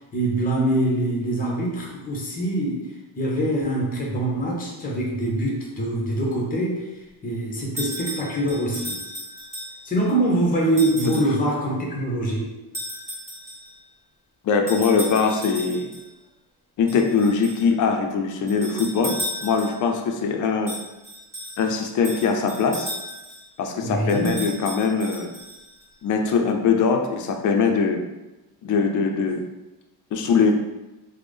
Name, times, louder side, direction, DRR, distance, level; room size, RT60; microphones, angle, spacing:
voice 1, 0.1-2.8 3.1-6.8 7.2-9.0 9.8-12.5 23.8-24.4, right 1 dB, 20° left, -2 dB, 0.8 m, -24 dB
sound 1, 7.8-10.0 10.8-11.4 12.7-13.8 14.7-16.1 16.9-17.7 18.5-19.9 20.7-23.4 24.1-25.9, equal, 5° right, 1.3 m, -35 dB
voice 2, 14.4-15.9 16.8-20.7 21.6-22.9 23.6-25.3 26.0-28.0 28.6-29.4 30.1-30.5, left 5 dB, 45° left, 3 dB, 0.5 m, -22 dB
3.4 x 2.1 x 3.4 m, 1.0 s
cardioid pair, 125°, 41 cm